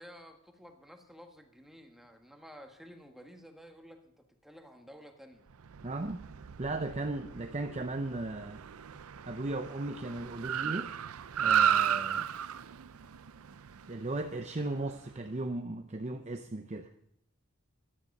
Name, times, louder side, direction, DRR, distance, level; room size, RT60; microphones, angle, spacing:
voice 1, 0.0-5.5, equal, ahead, 4 dB, 1.5 m, -52 dB
Car, 5.6-15.1, right 8 dB, 70° right, 0.5 m, -34 dB
voice 2, 5.8-6.2 6.6-8.6 9.3-10.9 11.4-12.3 13.9-16.9, right 2 dB, 30° right, 6 dB, 0.7 m, -36 dB
15.0 x 12.5 x 5.4 m, 0.73 s
head